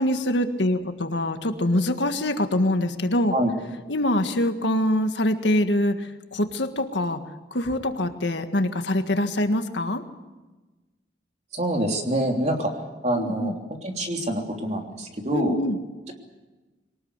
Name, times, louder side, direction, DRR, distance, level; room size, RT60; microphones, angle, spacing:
voice 1, 0.0-3.3 3.9-6.0 6.3-7.2 7.5-10.0 13.2-13.5 15.3-15.8, left 1 dB, 80° left, 7 dB, 1.7 m, -24 dB
voice 2, 11.5-12.7 13.0-13.5 13.8-15.6, right 1 dB, 40° right, 2 dB, 3.2 m, -26 dB
23.0 x 19.0 x 8.1 m, 1.2 s
head